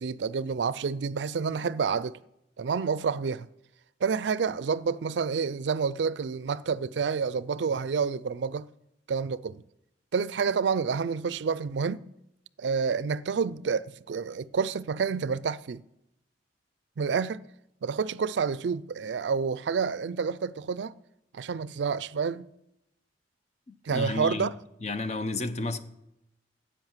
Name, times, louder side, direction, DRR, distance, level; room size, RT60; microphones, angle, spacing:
voice 1, 0.0-2.2 2.6-3.5 4.0-8.7 9.1-9.6 10.1-12.0 12.6-15.8 17.0-17.4 17.8-20.9 21.3-22.5 23.9-24.5, right 5 dB, 75° right, 0.4 m, -29 dB
voice 2, 23.7-24.5 24.8-25.8, left 3 dB, 40° left, 0.7 m, -32 dB
10.5 x 8.5 x 7.3 m
head